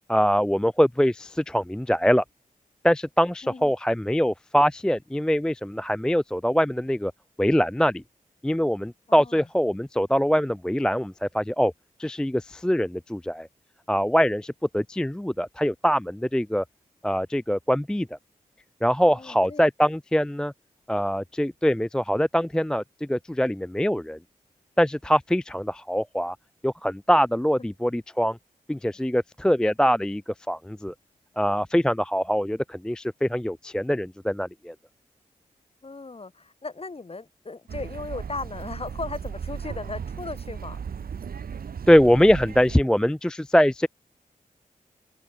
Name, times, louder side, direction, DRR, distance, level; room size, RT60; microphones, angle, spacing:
voice 1, 0.1-2.2 2.8-7.1 7.4-8.0 8.4-11.7 12.0-13.5 13.9-16.6 17.0-18.1 18.8-20.5 20.9-24.2 24.8-26.4 26.6-28.4 28.7-30.9 31.4-34.7 41.9-43.9, equal, 5° left, 0.4 m, -23 dB
voice 2, 9.1-9.5 19.1-19.6 35.8-40.8, left 3 dB, 40° left, 4.3 m, -37 dB
sound 1, 37.7-42.8, right 7 dB, 80° right, 3.2 m, -36 dB
open air
cardioid pair, 65°, 15 cm